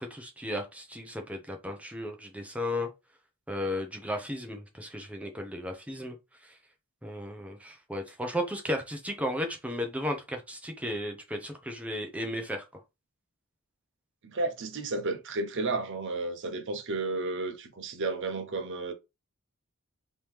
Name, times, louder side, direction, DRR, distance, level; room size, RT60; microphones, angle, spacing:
voice 1, 0.0-2.9 3.5-6.2 6.4-6.5 7.0-12.6, left 1 dB, 5° right, 0.8 m, -34 dB
voice 2, 14.3-18.9, right 3 dB, 55° right, 0.8 m, -32 dB
3.7 x 3.0 x 3.3 m
head